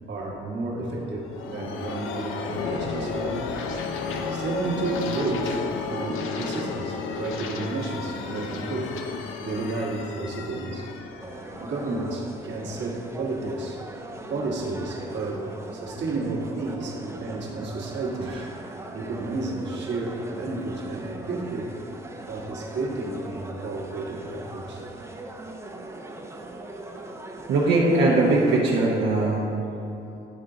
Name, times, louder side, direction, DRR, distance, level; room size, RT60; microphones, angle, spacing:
voice 1, 0.1-3.4 4.3-9.0 9.4-10.9 11.6-13.8 14.3-18.3 18.9-21.7 22.3-25.1, right 3 dB, 65° right, -3 dB, 1.4 m, -31 dB
sound 1, 1.0-12.5, left 4 dB, 85° left, 0.6 m, -32 dB
sound 2, 11.2-28.9, right 2 dB, 15° right, 0.5 m, -40 dB
voice 2, 27.5-29.6, right 2 dB, 80° right, -6 dB, 0.9 m, -21 dB
10.0 x 3.7 x 3.8 m, 3.0 s
cardioid pair, 90°, 20 cm